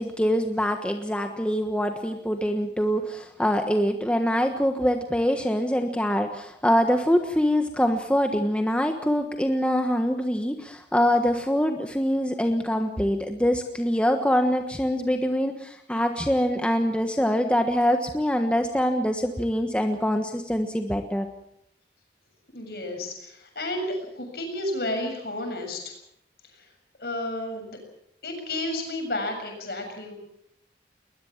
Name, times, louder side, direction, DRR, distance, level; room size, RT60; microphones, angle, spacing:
voice 1, 0.0-21.3, equal, 5° left, 5 dB, 1.3 m, -24 dB
voice 2, 22.5-25.9 27.0-27.8 28.2-30.1, left 1 dB, 60° left, 4 dB, 7.3 m, -31 dB
21.0 x 20.5 x 7.4 m, 0.74 s
head